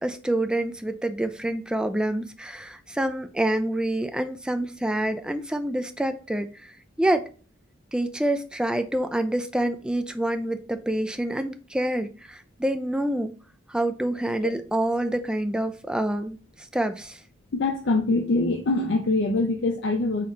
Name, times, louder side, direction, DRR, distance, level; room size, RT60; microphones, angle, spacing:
voice 1, 0.0-7.3 7.9-13.3 13.7-17.2, right 1 dB, 5° right, 0.4 m, -27 dB
voice 2, 17.5-20.3, left 2 dB, 60° left, 0.5 m, -24 dB
4.3 x 3.1 x 3.8 m
head